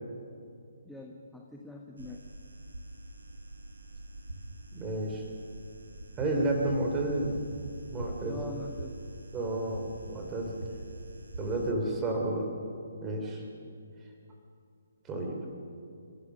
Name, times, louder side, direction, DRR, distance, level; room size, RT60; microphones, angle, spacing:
voice 1, 0.8-2.2 8.2-9.0, left 1 dB, ahead, -1 dB, 1.2 m, -44 dB
sound 1, 2.0-11.7, right 2 dB, 70° right, 2.3 m, -44 dB
voice 2, 4.7-5.2 6.2-7.4 7.9-8.5 9.3-10.6 11.4-12.5 13.0-13.4 15.0-15.5, right 2 dB, 15° right, 1 dB, 3.3 m, -31 dB
30.0 x 15.0 x 6.4 m, 2.4 s
figure-of-eight pair, 135°, 0 cm